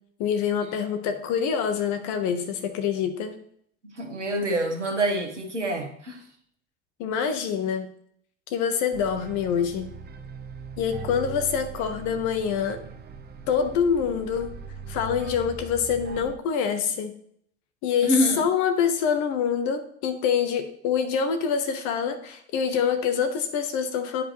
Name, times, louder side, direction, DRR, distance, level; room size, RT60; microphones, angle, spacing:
voice 1, 0.2-3.4 7.0-7.9 8.5-9.9 10.8-12.8 13.5-14.5 14.9-17.1 17.8-24.2, left 7 dB, 55° left, 8 dB, 1.2 m, -26 dB
voice 2, 3.8-6.2 18.0-18.4, equal, 90° right, 2 dB, 1.2 m, -26 dB
sound 1, 8.9-16.3, right 6 dB, 30° right, 0.9 m, -40 dB
10.0 x 5.0 x 3.1 m, 0.66 s
figure-of-eight pair, 65°, 35 cm